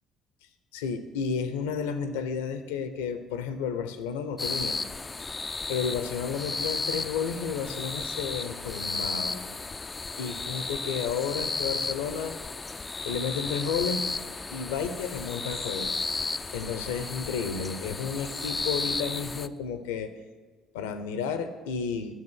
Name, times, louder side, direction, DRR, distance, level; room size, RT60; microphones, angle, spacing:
voice 1, 0.7-4.8 5.7-9.5 10.2-12.4 13.0-14.1 14.5-15.9 16.5-20.1 20.7-22.2, left 6 dB, 75° left, 10 dB, 0.7 m, -32 dB
sound 1, 4.4-19.5, left 3 dB, 25° left, 0.4 m, -34 dB
11.0 x 6.7 x 6.5 m, 1.4 s
figure-of-eight pair, 50°, 0 cm